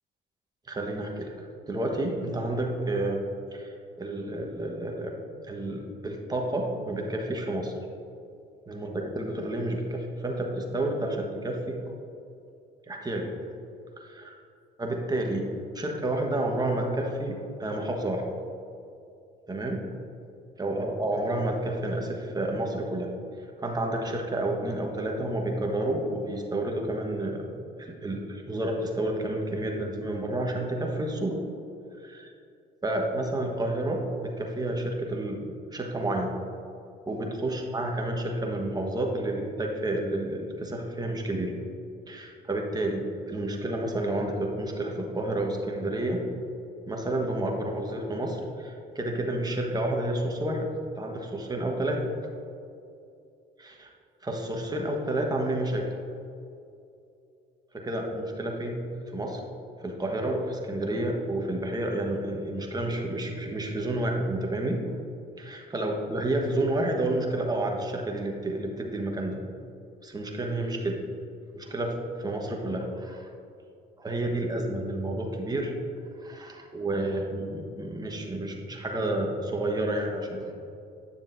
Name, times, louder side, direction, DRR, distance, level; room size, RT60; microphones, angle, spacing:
voice 1, 0.7-3.2 3.5-5.1 5.4-7.7 8.7-11.8 12.9-13.3 14.0-14.3 14.8-15.5 15.7-18.2 19.5-19.8 20.6-23.1 23.4-31.4 32.0-32.3 32.8-36.3 37.1-41.5 42.1-46.2 46.9-50.7 50.9-52.1 53.6-53.9 54.2-55.9 57.7-58.8 59.1-59.4 59.8-64.8 65.4-69.4 70.0-71.0 71.5-73.3 74.0-75.7 76.2-80.5, right 1 dB, 20° right, 1 dB, 1.3 m, -30 dB
9.7 x 6.9 x 2.7 m, 2.6 s
supercardioid pair, 80°, 21 cm